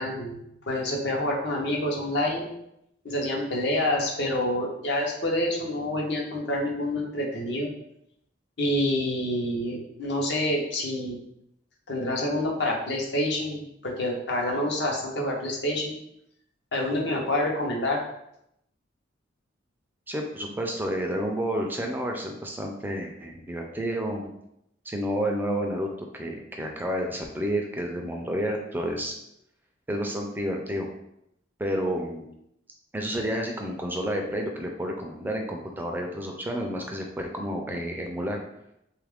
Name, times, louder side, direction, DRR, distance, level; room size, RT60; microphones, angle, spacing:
voice 1, 0.0-2.5 3.0-7.7 8.6-11.2 11.9-15.9 16.7-18.0, left 1 dB, 60° left, -1 dB, 0.7 m, -27 dB
voice 2, 20.1-24.3 24.9-25.9 26.1-29.1 29.9-30.9 31.6-32.3 32.9-38.4, equal, 10° right, 1 dB, 0.4 m, -30 dB
3.2 x 2.4 x 3.4 m, 0.78 s
head